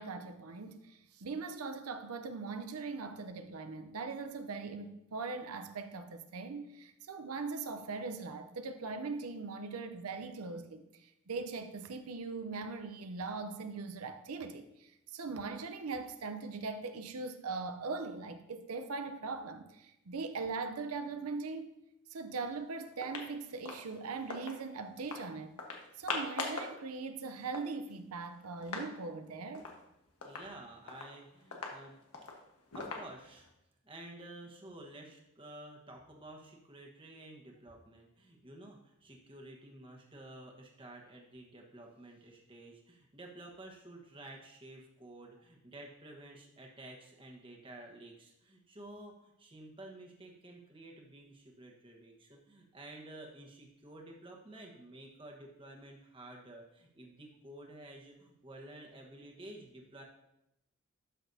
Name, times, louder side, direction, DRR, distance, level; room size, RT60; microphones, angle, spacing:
voice 1, 0.0-21.7 22.1-25.6 26.0-29.7, right 4 dB, 80° right, 0.6 m, -40 dB
sound 1, 22.5-22.6 22.9-24.6 25.0-25.2 25.6-26.8 27.1-27.2 27.4-28.9 29.2-29.3 29.5-29.8 30.2-33.5, left 3 dB, 90° left, 1.4 m, -42 dB
voice 2, 30.2-32.0 32.7-33.5 33.8-60.0, right 1 dB, 25° right, 1.2 m, -51 dB
12.5 x 6.1 x 2.7 m
head